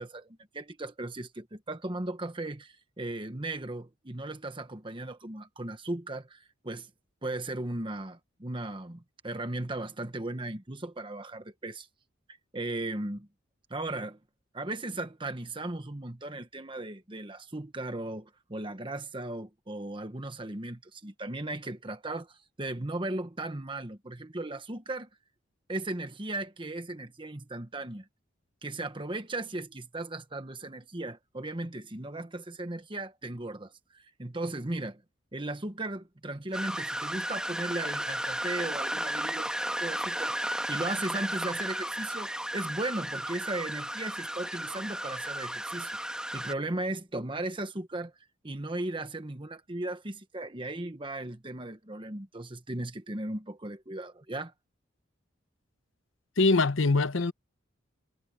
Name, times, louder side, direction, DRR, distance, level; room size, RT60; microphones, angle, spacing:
voice 1, 0.0-6.9 7.2-11.9 12.5-13.3 13.7-14.2 14.5-25.1 25.7-28.1 28.6-35.0 35.3-39.5 39.8-46.0 46.3-48.1 48.4-54.5, right 2 dB, 25° right, 1.3 m, -36 dB
sound 1, 36.5-46.5, right 1 dB, 5° right, 1.4 m, -34 dB
voice 2, 56.4-57.3, left 3 dB, 75° left, 0.9 m, -23 dB
head